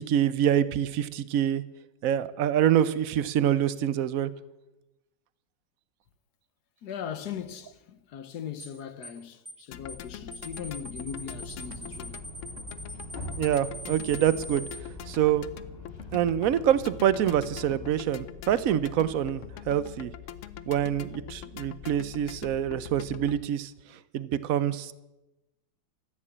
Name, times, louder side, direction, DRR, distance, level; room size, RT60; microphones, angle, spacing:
voice 1, 0.0-1.6 2.0-4.3 13.4-14.7 15.1-15.4 16.1-20.1 20.7-23.7 24.1-24.9, right 10 dB, 65° right, 0.8 m, -26 dB
voice 2, 6.8-12.2, left 8 dB, 60° left, 1.4 m, -39 dB
sound 1, 8.6-8.8 9.0-9.2 9.5-9.6 9.9-10.1 10.3-14.8, right 1 dB, 5° right, 2.6 m, -42 dB
sound 2, 9.7-23.4, left 11 dB, 80° left, 0.7 m, -43 dB
sound 3, 11.1-18.0, equal, 30° left, 2.5 m, -44 dB
14.0 x 9.9 x 8.6 m
omnidirectional pair, 2.1 m